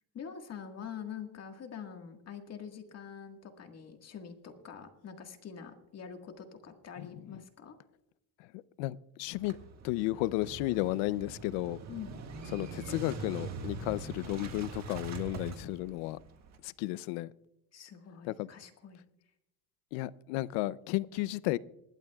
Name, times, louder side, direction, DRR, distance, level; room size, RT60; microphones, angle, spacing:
voice 1, 0.1-7.8 11.9-12.1 17.7-19.0, left 7 dB, 35° left, 1.7 m, -45 dB
voice 2, 8.5-9.6 9.8-11.8 12.5-16.2 16.6-17.3 18.3-18.5 19.9-21.6, left 17 dB, 80° left, 0.7 m, -33 dB
Motorcycle / Engine starting, 9.4-16.6, right 4 dB, 40° right, 1.7 m, -43 dB
26.0 x 12.0 x 2.4 m
cardioid pair, 135°, 43 cm